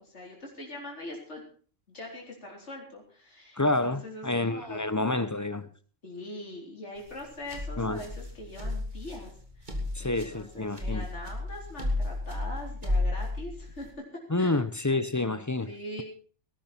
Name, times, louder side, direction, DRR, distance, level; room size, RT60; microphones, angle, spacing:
voice 1, 0.1-1.4 1.9-3.6 3.9-4.9 6.0-9.3 9.6-13.9 14.4-14.6 15.7-16.0, left 1 dB, 65° left, 4.2 m, -42 dB
voice 2, 3.6-5.7 7.8-8.0 9.9-11.1 14.3-15.7, left 2 dB, 20° left, 0.5 m, -28 dB
sound 1, 7.0-13.9, left 2 dB, 40° right, 3.4 m, -33 dB
19.0 x 12.5 x 4.4 m
omnidirectional pair, 1.3 m